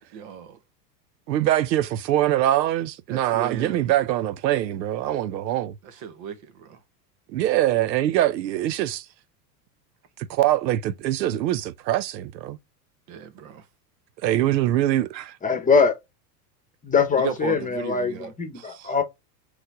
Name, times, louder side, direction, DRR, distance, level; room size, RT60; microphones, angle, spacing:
voice 1, 0.1-0.6 3.1-3.8 5.8-6.8 13.1-13.6 17.2-18.3, right 7 dB, 55° right, 1.2 m, -35 dB
voice 2, 1.3-5.7 7.3-9.0 10.3-12.6 14.2-15.4 18.6-18.9, right 13 dB, 85° right, 0.6 m, -23 dB
voice 3, 15.4-16.0 16.8-19.0, left 5 dB, 15° left, 1.0 m, -22 dB
3.8 x 3.2 x 3.6 m
hypercardioid pair, 95°, 50 cm